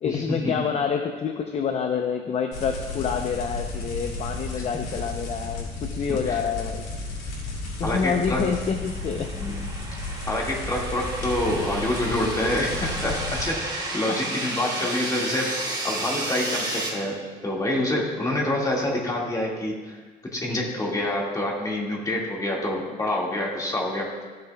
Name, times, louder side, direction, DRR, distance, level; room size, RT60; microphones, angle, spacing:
voice 1, 0.0-6.9 7.8-9.3 14.1-14.2, left 6 dB, 40° left, 5 dB, 0.5 m, -27 dB
sound 1, 2.5-13.5, left 2 dB, 85° left, 2.5 m, -33 dB
voice 2, 6.1-6.4 7.8-8.4 9.3-9.6 10.3-15.5 15.8-17.1 17.4-20.0 20.3-24.1, left 1 dB, 20° left, -2 dB, 1.9 m, -27 dB
sound 2, 7.9-16.9, right 2 dB, 25° right, 1.8 m, -33 dB
14.5 x 6.7 x 2.3 m, 1.4 s
cardioid pair, 110°, 17 cm